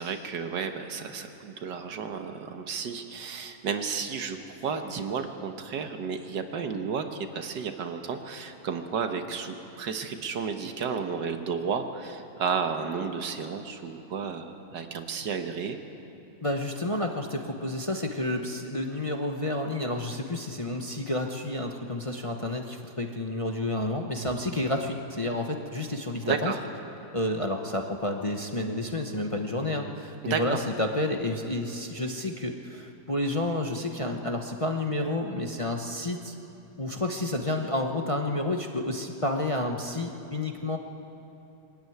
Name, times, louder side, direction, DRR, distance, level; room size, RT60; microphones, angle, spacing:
voice 1, 0.0-15.8 26.3-26.6 30.2-30.6, right 6 dB, 85° right, 6 dB, 1.9 m, -32 dB
voice 2, 16.4-26.5 27.1-36.4 36.8-40.8, left 1 dB, 25° left, 3 dB, 0.8 m, -30 dB
22.5 x 13.5 x 9.4 m, 2.9 s
omnidirectional pair, 1.8 m